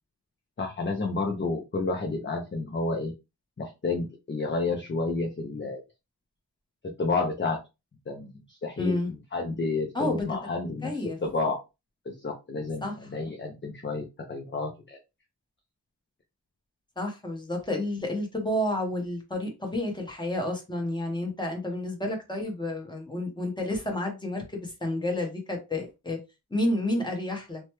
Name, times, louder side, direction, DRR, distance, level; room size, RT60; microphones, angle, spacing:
voice 1, 0.6-3.1 3.6-5.8 7.0-7.6 8.1-10.9 11.2-11.6 12.1-15.0, left 3 dB, 30° left, 0.5 m, -30 dB
voice 2, 8.8-9.1 9.9-10.3 10.8-11.2 12.8-12.9 17.0-26.2 26.5-27.6, left 1 dB, 10° left, 1.0 m, -30 dB
3.0 x 2.2 x 3.0 m
wide cardioid pair, 90°, 41 cm